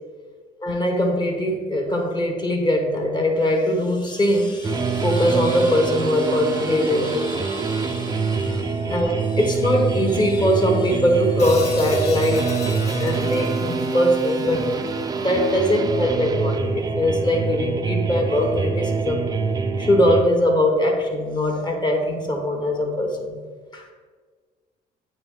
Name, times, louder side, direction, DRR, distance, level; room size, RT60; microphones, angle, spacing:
voice 1, 0.6-14.7 15.2-19.2 19.8-23.4 23.7-23.9, left 1 dB, 25° left, 2 dB, 1.1 m, -22 dB
sound 1, 4.6-20.2, right 4 dB, 25° right, 0.4 m, -25 dB
Hi-hat, 11.4-15.6, left 4 dB, 40° left, 0.6 m, -35 dB
8.7 x 3.1 x 3.6 m, 1.5 s
cardioid pair, 110°, 17 cm